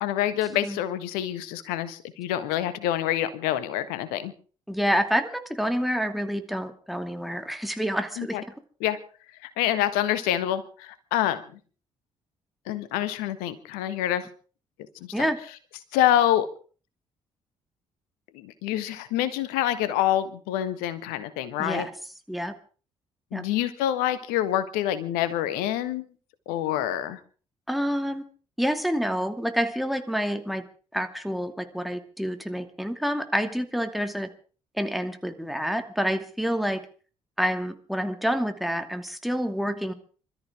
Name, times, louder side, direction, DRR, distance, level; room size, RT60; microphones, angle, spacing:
voice 1, 0.0-4.3 8.2-8.4 8.8-9.0 9.4-11.4 12.7-14.3 15.9-16.5 18.3-21.9 23.3-26.1 26.5-27.2, left 12 dB, 70° left, 13 dB, 1.5 m, -26 dB
voice 2, 4.7-8.4 15.1-15.4 21.6-21.9 22.3-22.6 23.3-23.4 27.7-28.3 28.6-30.6 30.9-34.3 34.8-36.8 37.4-39.9, equal, ahead, 7 dB, 2.4 m, -28 dB
26.5 x 13.5 x 3.7 m, 0.40 s
figure-of-eight pair, 45°, 16 cm